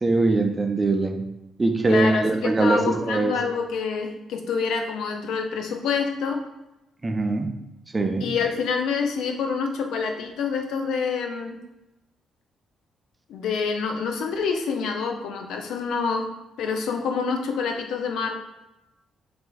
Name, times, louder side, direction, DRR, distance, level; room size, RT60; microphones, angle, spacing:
voice 1, 0.0-1.2 1.6-3.3 7.0-7.5 7.9-8.2, right 2 dB, 30° right, 4 dB, 0.6 m, -22 dB
voice 2, 1.9-6.4 8.2-11.6 13.3-16.3 16.6-18.4, left 5 dB, 65° left, 3 dB, 0.5 m, -27 dB
6.8 x 2.6 x 2.3 m, 0.94 s
figure-of-eight pair, 40°, 0 cm